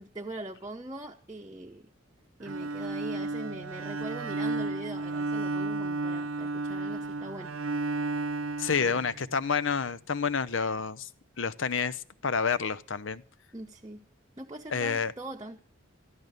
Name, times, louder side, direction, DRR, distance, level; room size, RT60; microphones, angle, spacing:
voice 1, 0.0-1.9 2.4-7.5 8.8-9.0 13.5-14.1 14.4-15.6, right 2 dB, 20° right, 1 dB, 0.8 m, -42 dB
Bowed string instrument, 2.4-9.6, right 2 dB, 85° right, 0.8 m, -33 dB
voice 2, 8.6-11.1 11.4-13.2 14.7-15.1, left 5 dB, 70° left, 17 dB, 0.7 m, -29 dB
13.5 x 12.5 x 6.5 m, 0.41 s
head